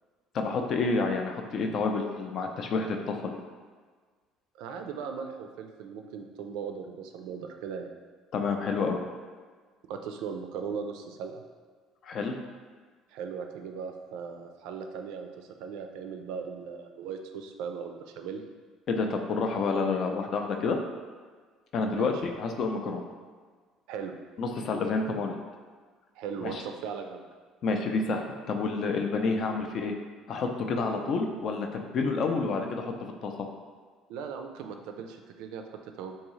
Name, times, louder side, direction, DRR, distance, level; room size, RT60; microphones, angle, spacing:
voice 1, 0.3-3.4 8.3-9.0 12.0-12.4 18.9-20.8 21.7-23.1 24.4-25.3 26.4-26.6 27.6-29.9 30.3-32.9 33.2-33.3, left 4 dB, 50° left, 4 dB, 0.4 m, -29 dB
voice 2, 4.6-7.9 9.9-11.4 13.1-18.4 21.8-22.1 23.9-24.1 26.2-27.3 30.9-31.1 34.1-36.2, right 6 dB, 80° right, 5 dB, 0.3 m, -38 dB
3.6 x 2.7 x 3.1 m, 1.5 s
cardioid pair, 130°, 0 cm